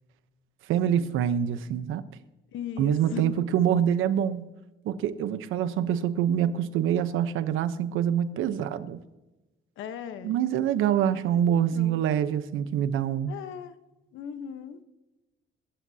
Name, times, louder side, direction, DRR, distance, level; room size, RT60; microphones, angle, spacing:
voice 1, 0.7-2.0 2.8-4.5 4.8-9.0 10.2-13.3, right 9 dB, 90° right, 0.9 m, -25 dB
voice 2, 2.5-3.4 9.8-10.4 11.0-12.0 13.3-13.8 14.1-14.8, left 8 dB, 85° left, 1.1 m, -38 dB
22.0 x 12.0 x 2.8 m
cardioid pair, 90°, 20 cm